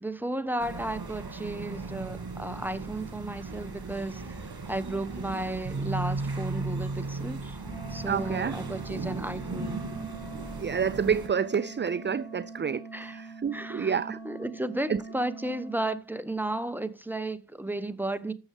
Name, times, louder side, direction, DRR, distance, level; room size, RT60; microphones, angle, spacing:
voice 1, 0.0-7.6 7.9-9.8 12.9-13.2 13.5-18.3, right 1 dB, 5° right, 1.1 m, -34 dB
sound 1, 0.6-11.3, right 3 dB, 65° right, 2.4 m, -36 dB
Wind instrument woodwind instrument, 7.6-16.0, right 3 dB, 30° left, 3.5 m, -43 dB
voice 2, 8.1-8.6 10.6-14.2 14.9-15.0, right 7 dB, 30° right, 0.4 m, -29 dB
13.5 x 7.1 x 3.5 m
cardioid pair, 45°, 39 cm